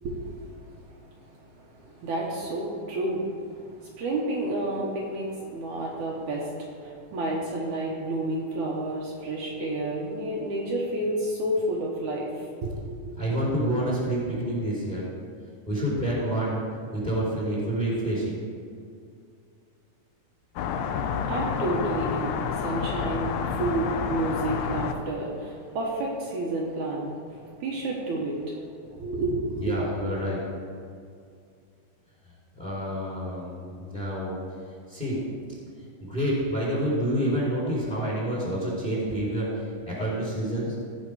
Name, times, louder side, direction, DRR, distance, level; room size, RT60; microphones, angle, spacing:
voice 1, 0.0-13.1 20.9-29.7, right 1 dB, 65° right, -3 dB, 2.4 m, -31 dB
voice 2, 13.1-15.1 15.7-16.6 16.9-18.4 29.6-30.4 32.6-34.4 34.9-35.2 36.0-39.5 39.9-40.7, right 1 dB, 15° left, -5 dB, 2.9 m, -28 dB
sound 1, 20.6-24.9, left 7 dB, 85° left, 1.5 m, -29 dB
15.5 x 5.8 x 4.9 m, 2.3 s
omnidirectional pair, 3.9 m